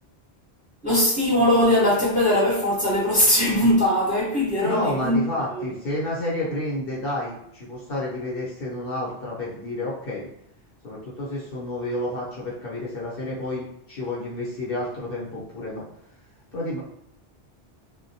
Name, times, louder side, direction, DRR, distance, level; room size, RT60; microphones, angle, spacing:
voice 1, 0.8-5.2 5.5-5.7, left 1 dB, 10° right, -8 dB, 0.8 m, -20 dB
voice 2, 4.6-10.3 10.8-15.8 16.5-16.8, left 1 dB, 60° left, -7 dB, 0.9 m, -30 dB
2.2 x 2.1 x 2.6 m, 0.73 s
omnidirectional pair, 1.1 m